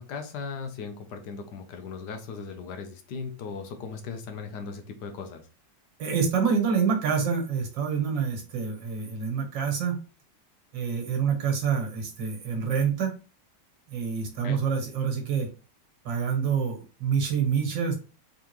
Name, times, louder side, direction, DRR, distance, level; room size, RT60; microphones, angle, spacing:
voice 1, 0.0-5.4 14.4-14.6, left 5 dB, 70° left, 6 dB, 1.3 m, -38 dB
voice 2, 6.0-10.0 10.7-13.2 13.9-15.5 16.1-18.0, right 6 dB, 80° right, 2 dB, 2.0 m, -27 dB
3.8 x 3.6 x 3.0 m, 0.33 s
omnidirectional pair, 2.0 m